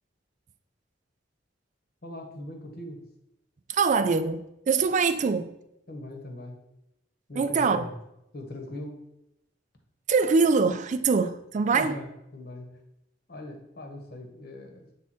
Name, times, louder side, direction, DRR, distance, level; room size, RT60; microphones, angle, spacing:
voice 1, 2.0-3.0 5.9-6.6 7.3-8.0 8.3-9.0 11.7-12.7 13.3-14.9, left 1 dB, 55° left, 3 dB, 1.2 m, -40 dB
voice 2, 3.7-5.5 7.4-7.9 10.1-12.0, right 4 dB, 40° right, 10 dB, 0.3 m, -23 dB
7.4 x 3.6 x 4.2 m, 0.84 s
head